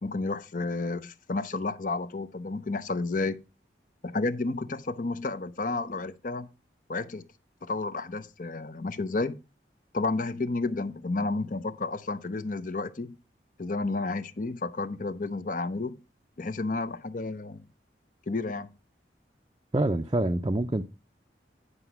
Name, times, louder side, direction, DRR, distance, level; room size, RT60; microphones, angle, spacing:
voice 1, 0.0-3.4 4.0-6.5 6.9-7.3 7.6-9.4 9.9-13.2 13.6-16.0 16.4-17.6 18.3-18.7, left 3 dB, 45° left, 0.7 m, -31 dB
voice 2, 19.7-20.8, right 1 dB, 25° right, 0.5 m, -26 dB
9.9 x 5.0 x 5.7 m
head